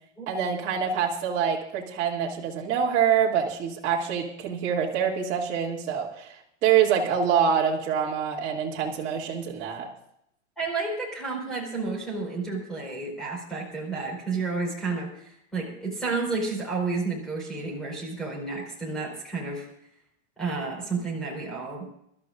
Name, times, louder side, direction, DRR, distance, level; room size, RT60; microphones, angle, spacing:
voice 1, 0.3-6.3 6.6-9.9, right 8 dB, 35° right, -5 dB, 2.5 m, -25 dB
voice 2, 10.6-19.7 20.4-21.9, right 3 dB, ahead, -3 dB, 4.7 m, -31 dB
26.5 x 13.0 x 2.6 m, 0.74 s
supercardioid pair, 170°, 35 cm